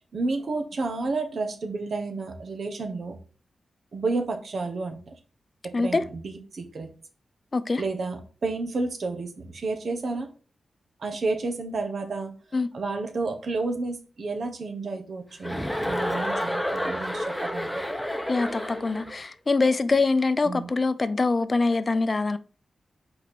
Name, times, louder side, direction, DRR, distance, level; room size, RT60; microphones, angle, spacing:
voice 1, 0.1-3.2 3.9-5.1 5.8-6.9 7.8-10.3 11.0-12.3 12.7-17.8 20.4-20.7, right 3 dB, 65° right, 1.2 m, -31 dB
voice 2, 5.7-6.0 7.5-7.8 12.5-12.7 18.3-22.4, left 3 dB, 40° left, 0.5 m, -24 dB
Chuckle chortle, 15.4-19.2, equal, 5° left, 1.0 m, -30 dB
5.3 x 4.3 x 4.3 m
cardioid pair, 80°, 0 cm